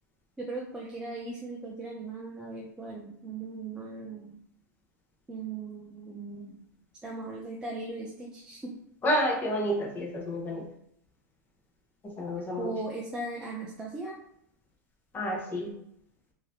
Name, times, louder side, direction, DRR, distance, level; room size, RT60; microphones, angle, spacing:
voice 1, 0.4-4.3 5.3-6.6 7.0-8.7 12.6-14.2, right 3 dB, 10° right, -4 dB, 0.4 m, -38 dB
voice 2, 9.0-10.7 12.2-12.7 15.1-15.7, equal, 20° left, -1 dB, 0.9 m, -29 dB
2.7 x 2.6 x 3.2 m, 0.73 s
supercardioid pair, 140°, 10 cm